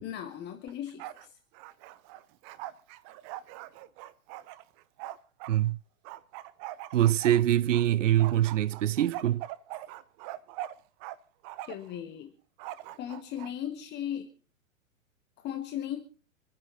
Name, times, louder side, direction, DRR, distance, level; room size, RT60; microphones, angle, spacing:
voice 1, 0.0-1.4 11.6-12.3 13.0-14.3 15.4-16.0, left 10 dB, 25° left, 1.6 m, -37 dB
Bark, 0.7-1.3 1.5-5.6 6.0-7.8 8.2-11.2 11.4-11.9 12.6-13.5, right 14 dB, 30° right, 0.9 m, -42 dB
voice 2, 6.9-9.4, right 12 dB, 65° right, 0.6 m, -24 dB
27.0 x 10.5 x 4.0 m
figure-of-eight pair, 110°, 40 cm